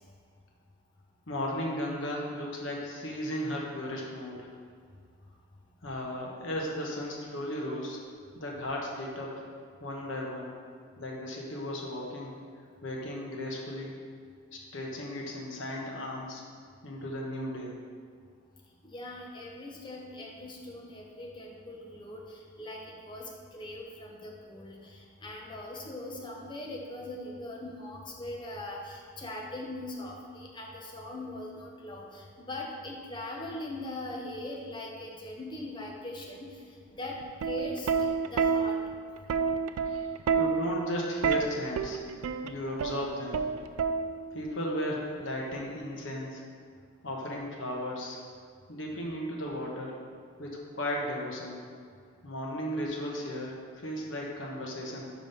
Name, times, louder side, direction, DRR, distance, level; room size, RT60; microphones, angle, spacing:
voice 1, 1.3-4.5 5.8-8.0 8.3-9.5 9.8-10.5 11.0-12.3 12.8-13.9 14.5-16.4 16.8-17.8 39.8-40.0 40.4-42.0 42.4-43.4 44.3-46.4 47.0-48.2 48.7-50.0 50.4-51.6 52.2-55.1, equal, 60° left, -2 dB, 1.1 m, -35 dB
voice 2, 18.8-36.6 36.9-37.9 38.3-38.8, left 1 dB, 20° left, -1 dB, 0.8 m, -41 dB
Plucked string instrument, 37.2-44.4 45.5-45.8, right 5 dB, 85° right, 0.3 m, -29 dB
5.2 x 4.9 x 5.5 m, 2.1 s
head